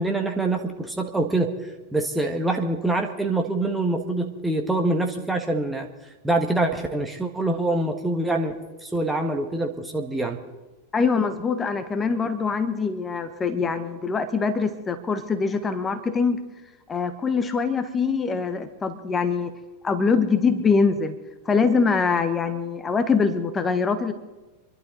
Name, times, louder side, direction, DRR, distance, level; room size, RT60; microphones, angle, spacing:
voice 1, 0.0-1.5 1.9-5.9 6.2-8.6 8.8-10.4, right 2 dB, 5° right, 2 dB, 1.5 m, -25 dB
voice 2, 10.9-16.4 16.9-19.5 19.8-21.1 21.4-24.1, left 5 dB, 15° left, 10 dB, 1.2 m, -23 dB
27.0 x 11.5 x 3.9 m, 1.2 s
figure-of-eight pair, 90°, 0 cm